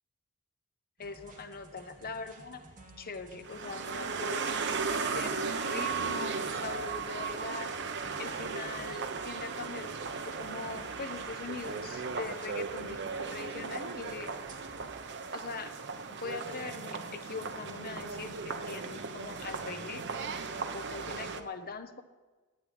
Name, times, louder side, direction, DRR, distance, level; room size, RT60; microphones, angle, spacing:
voice 1, 1.0-2.6 3.0-4.5 5.1-7.7 8.2-10.0 10.2-14.3 15.3-15.7 16.1-20.0 20.5-22.0, left 4 dB, 40° left, 9 dB, 0.9 m, -42 dB
sound 1, 1.0-15.1, right 2 dB, 35° right, 2.4 m, -54 dB
sound 2, 3.5-21.4, right 5 dB, 50° right, 1.0 m, -36 dB
12.0 x 9.0 x 9.5 m, 1.3 s
head